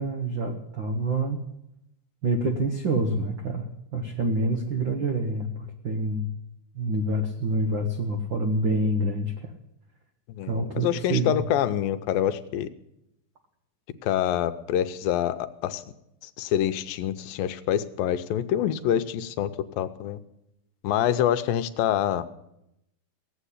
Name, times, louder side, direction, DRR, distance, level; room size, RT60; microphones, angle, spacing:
voice 1, 0.0-1.4 2.2-6.3 6.7-9.5 10.5-11.4, right 1 dB, 75° right, 5 dB, 1.0 m, -27 dB
voice 2, 10.3-12.7 14.0-15.8 16.2-20.2 20.8-22.3, left 11 dB, 85° left, 11 dB, 2.5 m, -26 dB
16.5 x 8.2 x 9.9 m, 0.81 s
omnidirectional pair, 4.0 m